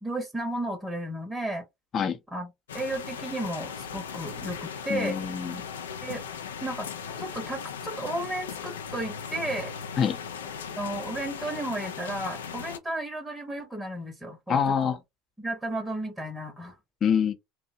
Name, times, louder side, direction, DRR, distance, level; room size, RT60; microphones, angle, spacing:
voice 1, 0.0-1.6 2.3-2.5 2.7-5.2 6.0-6.2 6.6-6.9 7.2-9.7 10.8-15.0 15.4-16.8, right 1 dB, 10° right, 0.7 m, -33 dB
sound 1, 2.7-12.8, left 7 dB, 85° left, 0.3 m, -38 dB
voice 2, 4.9-5.6 10.0-10.2 14.5-15.0 17.0-17.3, left 7 dB, 40° left, 0.6 m, -25 dB
2.7 x 2.0 x 2.6 m
hypercardioid pair, 75°, 0 cm